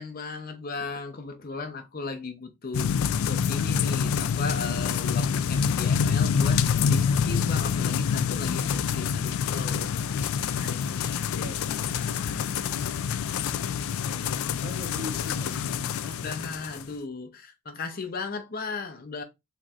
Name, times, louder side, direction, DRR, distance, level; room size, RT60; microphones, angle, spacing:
voice 1, 0.0-12.8 16.1-19.2, left 4 dB, 45° left, 0.6 m, -37 dB
sound 1, 2.7-16.9, left 7 dB, 85° left, 0.3 m, -26 dB
voice 2, 11.1-12.1 13.7-16.2, equal, 80° right, 1.9 m, -43 dB
4.2 x 3.1 x 2.4 m
head